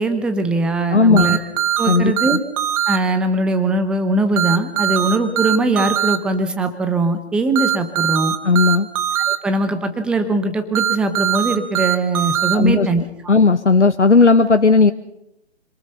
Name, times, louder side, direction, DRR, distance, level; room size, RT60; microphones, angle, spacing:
voice 1, 0.0-1.4 1.8-2.4 2.9-8.3 9.3-13.0, right 2 dB, 5° right, 8 dB, 0.8 m, -20 dB
voice 2, 0.9-1.3 1.9-2.4 4.9-5.0 8.4-8.9 12.5-12.9 13.3-14.9, left 4 dB, 90° left, 10 dB, 1.1 m, -14 dB
sound 1, 1.2-3.0 4.4-6.2 7.6-9.4 10.7-12.6, right 10 dB, 30° right, 1.5 m, -20 dB
26.0 x 19.5 x 5.5 m, 0.81 s
figure-of-eight pair, 140°, 34 cm